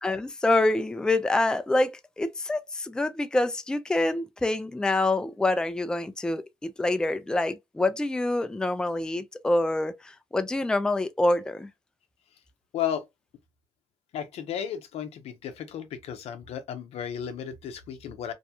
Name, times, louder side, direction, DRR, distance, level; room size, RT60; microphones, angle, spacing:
voice 1, 0.0-11.7, left 2 dB, 5° left, 0.4 m, -26 dB
voice 2, 12.7-13.1 14.1-18.3, left 9 dB, 70° left, 0.6 m, -34 dB
2.6 x 2.2 x 2.8 m
cardioid pair, 75°, 11 cm